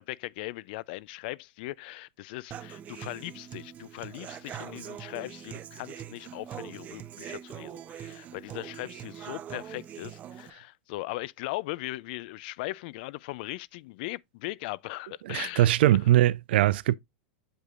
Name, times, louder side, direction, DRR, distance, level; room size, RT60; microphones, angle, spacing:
voice 1, 0.0-16.0, left 20 dB, 60° left, 0.4 m, -39 dB
Human voice / Acoustic guitar, 2.5-10.5, right 10 dB, 30° right, 0.6 m, -43 dB
voice 2, 15.3-17.0, right 14 dB, 75° right, 0.4 m, -21 dB
7.9 x 6.6 x 2.4 m
supercardioid pair, 135°, 6 cm